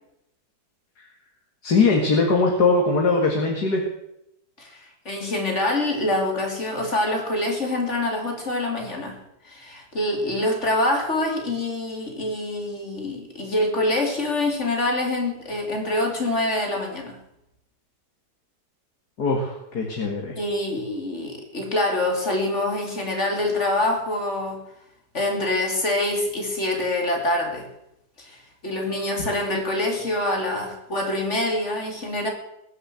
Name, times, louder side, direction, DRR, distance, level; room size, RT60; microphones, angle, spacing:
voice 1, 1.6-3.8 19.2-20.4, left 3 dB, 70° left, 1 dB, 2.6 m, -21 dB
voice 2, 4.6-17.2 20.3-24.6 25.1-27.7 28.2-32.3, left 1 dB, 40° left, 2 dB, 3.4 m, -25 dB
21.0 x 8.0 x 7.8 m, 0.82 s
omnidirectional pair, 1.8 m